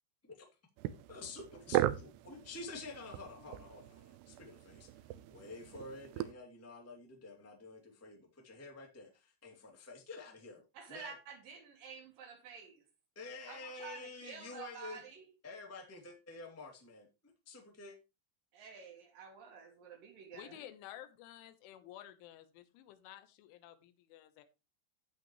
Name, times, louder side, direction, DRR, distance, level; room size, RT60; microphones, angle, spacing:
sound 1, 0.8-6.3, right 14 dB, 90° right, 2.4 m, -38 dB
voice 1, 1.1-4.9 5.3-10.6 10.9-11.1 13.1-15.0 15.4-17.1 17.4-18.0, left 3 dB, 10° left, 0.8 m, -49 dB
voice 2, 10.7-12.8 13.4-15.3 18.5-20.6, right 6 dB, 55° right, 3.4 m, -50 dB
voice 3, 20.3-24.4, left 12 dB, 85° left, 3.5 m, -52 dB
12.0 x 8.4 x 3.1 m
omnidirectional pair, 5.5 m